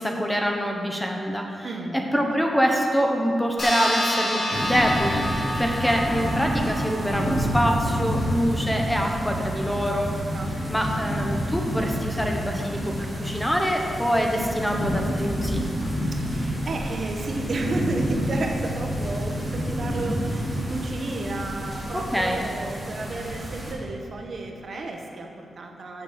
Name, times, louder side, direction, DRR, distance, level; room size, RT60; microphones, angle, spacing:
voice 1, 0.0-1.7 1.9-5.2 5.6-10.1 10.7-15.6 21.9-22.4, equal, 5° left, 2 dB, 0.9 m, -25 dB
voice 2, 1.6-2.0 10.3-10.6 16.1-26.0, right 2 dB, 50° right, 2 dB, 1.0 m, -32 dB
sound 1, 3.6-8.5, left 1 dB, 40° left, 2.5 m, -30 dB
sound 2, 4.5-23.7, equal, 10° right, 2.5 m, -29 dB
7.0 x 6.5 x 7.1 m, 2.5 s
wide cardioid pair, 120°, 0 cm